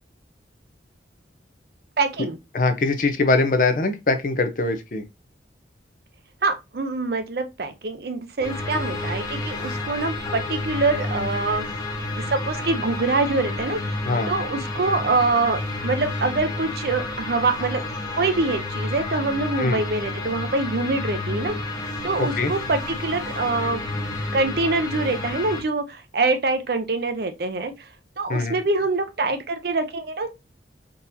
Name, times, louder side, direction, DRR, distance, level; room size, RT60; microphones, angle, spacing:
voice 1, 2.0-2.4 6.4-11.6 12.1-14.0 14.3-17.8 18.1-21.5 22.0-23.8 24.3-27.9 28.2-30.4, right 3 dB, 55° right, 0.5 m, -25 dB
voice 2, 2.5-5.0 14.0-14.3 19.6-19.8 22.2-22.5 28.3-28.6, left 3 dB, 45° left, 0.5 m, -22 dB
sound 1, 8.4-25.6, left 2 dB, 20° left, 0.9 m, -30 dB
3.8 x 2.8 x 2.6 m
head